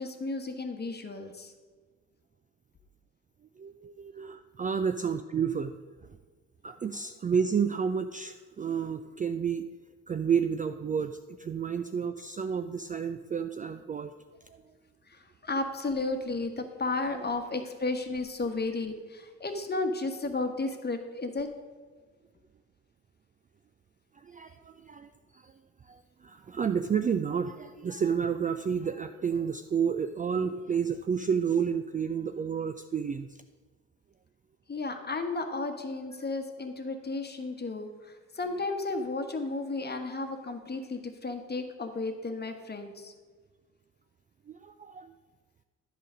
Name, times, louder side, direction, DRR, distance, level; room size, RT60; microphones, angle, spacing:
voice 1, 0.0-1.5 15.1-21.5 34.7-43.1, left 3 dB, 25° left, 6 dB, 1.3 m, -33 dB
voice 2, 3.6-5.7 6.6-9.7 10.1-14.1 14.5-14.6 17.1-17.2 24.2-25.5 25.9-33.4 44.5-45.1, right 7 dB, 20° right, 9 dB, 0.4 m, -30 dB
11.0 x 5.0 x 6.2 m, 1.4 s
hypercardioid pair, 45°, 37 cm